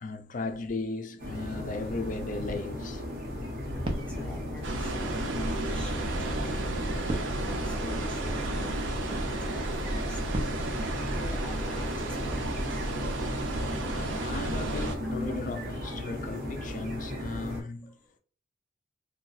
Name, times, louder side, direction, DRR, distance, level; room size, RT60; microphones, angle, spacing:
voice 1, 0.0-3.0 13.9-18.0, left 3 dB, 45° left, 0.4 m, -36 dB
sound 1, 1.2-17.6, left 1 dB, 50° right, 1.0 m, -36 dB
sound 2, 2.7-12.2, right 1 dB, 30° right, 0.6 m, -43 dB
voice 2, 4.0-6.5 7.1-10.6 11.1-12.9 17.8-18.2, left 1 dB, 5° left, 0.7 m, -46 dB
sound 3, 4.6-15.0, right 2 dB, 80° right, 0.6 m, -32 dB
2.5 x 2.2 x 4.0 m
head